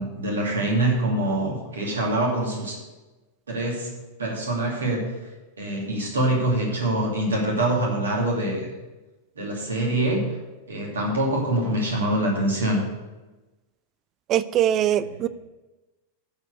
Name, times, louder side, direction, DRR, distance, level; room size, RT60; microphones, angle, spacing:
voice 1, 0.0-2.8 3.5-3.9 4.2-5.1 5.6-8.7 9.4-10.2 10.7-12.8, right 1 dB, 70° right, -2 dB, 2.5 m, -24 dB
voice 2, 14.3-15.3, right 11 dB, 35° right, 16 dB, 0.4 m, -22 dB
10.0 x 4.7 x 7.9 m, 1.1 s
figure-of-eight pair, 90°, 0 cm